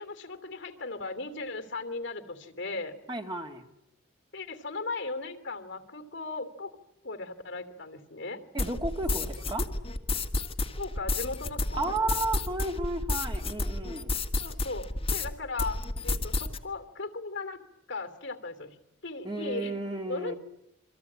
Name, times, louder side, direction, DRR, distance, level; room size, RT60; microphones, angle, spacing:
voice 1, 0.0-2.9 4.3-6.8 7.0-8.4 10.8-11.8 14.4-15.8 16.0-17.6 17.9-18.8 19.0-19.8 20.1-20.4, left 3 dB, 60° left, 9 dB, 3.0 m, -37 dB
voice 2, 3.1-3.6 8.5-9.7 11.8-14.1 19.2-20.3, right 2 dB, 20° right, 4 dB, 2.3 m, -33 dB
sound 1, 8.6-15.3 15.6-16.6, left 2 dB, 25° left, 2.0 m, -31 dB
28.5 x 24.5 x 8.7 m, 0.85 s
head